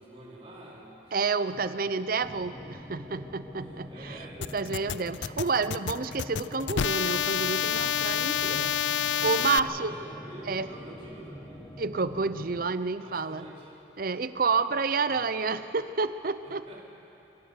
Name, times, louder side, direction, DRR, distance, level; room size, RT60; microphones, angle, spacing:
voice 1, 0.0-1.1 1.5-1.7 3.6-5.0 9.3-11.8 13.0-13.7 15.1-15.2 16.4-16.8, right 1 dB, 30° right, -6 dB, 4.5 m, -47 dB
voice 2, 1.1-4.2 4.5-9.9 10.5-10.7 11.8-13.5 14.0-16.6, right 4 dB, 45° right, 13 dB, 0.6 m, -29 dB
sound 1, 2.2-12.7, equal, 10° left, 1.0 m, -45 dB
sound 2, 4.4-9.6, left 10 dB, 65° left, 0.4 m, -28 dB
24.0 x 18.0 x 6.9 m, 3.0 s
head